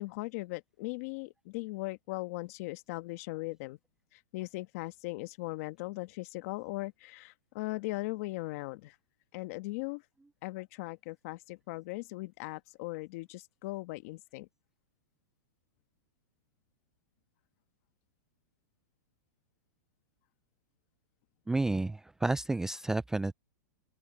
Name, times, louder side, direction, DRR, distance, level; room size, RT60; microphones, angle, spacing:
voice 1, 0.0-3.8 4.1-8.9 9.3-10.0 10.4-14.5, left 21 dB, 50° left, 1.5 m, -39 dB
voice 2, 21.5-23.3, right 2 dB, 5° right, 0.4 m, -30 dB
open air
hypercardioid pair, 140°, 10 cm